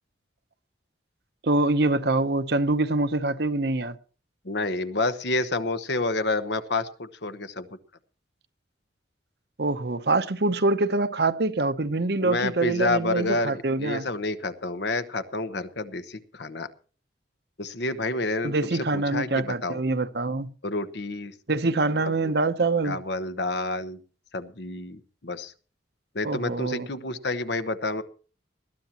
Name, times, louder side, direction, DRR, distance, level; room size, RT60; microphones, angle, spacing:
voice 1, 1.4-4.0 9.6-14.1 18.4-20.5 21.5-23.0 26.2-26.9, right 2 dB, 60° right, 0.9 m, -25 dB
voice 2, 4.4-7.7 12.2-16.7 17.6-19.8 20.6-21.3 22.8-24.0 24.3-25.5 26.1-28.0, left 2 dB, 65° left, 1.1 m, -29 dB
20.0 x 13.0 x 3.0 m
head